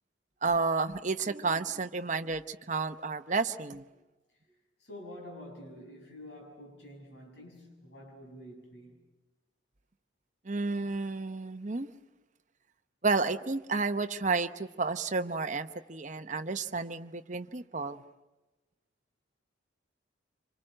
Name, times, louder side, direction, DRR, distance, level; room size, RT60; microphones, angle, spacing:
voice 1, 0.4-3.8 10.5-11.9 13.0-18.0, right 4 dB, 40° right, 9 dB, 0.9 m, -31 dB
voice 2, 4.8-9.0, left 1 dB, 60° left, 0 dB, 6.6 m, -48 dB
26.0 x 25.5 x 7.8 m, 1.1 s
head